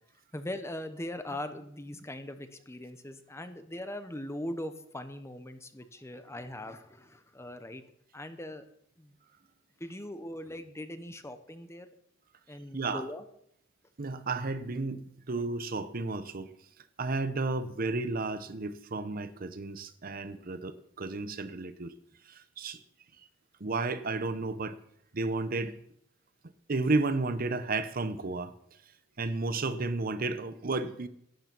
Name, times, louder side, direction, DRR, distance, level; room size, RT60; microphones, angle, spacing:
voice 1, 0.3-7.8 8.1-8.6 9.0-9.1 9.8-11.9 12.5-13.2, left 1 dB, 15° left, 0.9 m, -40 dB
voice 2, 12.7-13.1 14.0-16.5 17.0-21.9 22.2-22.8 23.6-24.8 25.1-25.7 26.7-28.5 29.2-31.1, right 3 dB, 50° right, 0.7 m, -32 dB
12.0 x 9.7 x 6.0 m
head